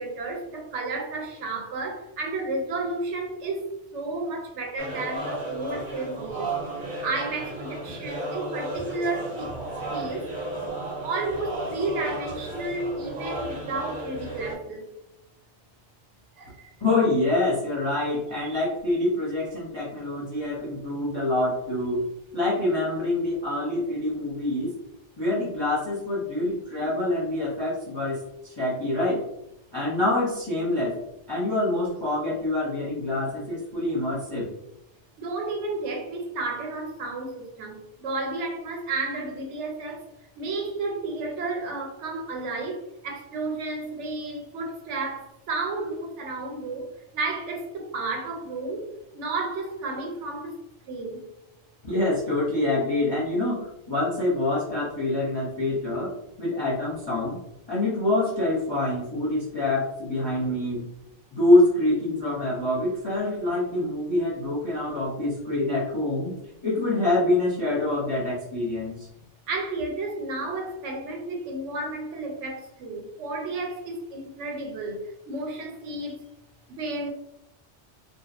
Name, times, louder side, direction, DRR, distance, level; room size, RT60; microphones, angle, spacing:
voice 1, 0.0-3.6 3.9-6.5 7.0-9.5 9.9-10.3 11.0-14.8 16.4-16.7 18.4-18.6 35.2-40.1 40.4-50.6 50.9-51.3 69.5-76.2 76.7-77.1, right 3 dB, 75° right, 1 dB, 0.9 m, -32 dB
sound 1, 4.8-14.5, right 1 dB, 50° right, 0.7 m, -34 dB
voice 2, 16.8-22.0 22.3-24.7 25.2-29.2 29.7-31.0 31.3-34.5 51.8-56.1 56.4-57.4 57.7-60.8 61.3-66.3 66.6-69.1, left 2 dB, 30° left, -6 dB, 0.5 m, -25 dB
2.6 x 2.1 x 2.3 m, 0.83 s
omnidirectional pair, 1.2 m